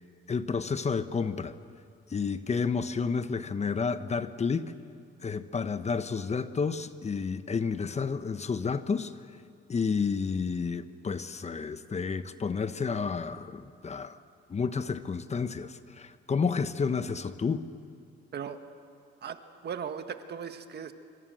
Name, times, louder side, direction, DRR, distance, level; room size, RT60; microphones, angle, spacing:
voice 1, 0.3-1.5 2.1-4.7 5.2-9.2 9.7-14.2 14.5-17.7, left 5 dB, 35° left, 11 dB, 1.1 m, -30 dB
voice 2, 19.2-20.9, right 7 dB, 55° right, 8 dB, 1.7 m, -38 dB
26.5 x 25.0 x 7.9 m, 2.2 s
cardioid pair, 90°, 20 cm